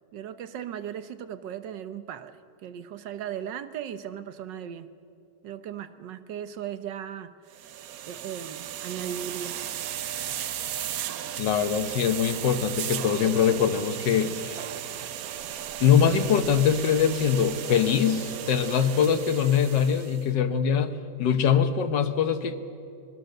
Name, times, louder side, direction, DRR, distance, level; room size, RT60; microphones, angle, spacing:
voice 1, 0.1-4.9 5.4-7.8 8.0-9.6, right 9 dB, 85° right, 11 dB, 1.6 m, -37 dB
sound 1, 7.5-20.3, right 10 dB, 65° right, 1.0 m, -35 dB
voice 2, 11.4-14.6 15.8-22.6, left 7 dB, 80° left, 10 dB, 1.7 m, -23 dB
25.5 x 20.5 x 6.6 m, 2.7 s
omnidirectional pair, 1.9 m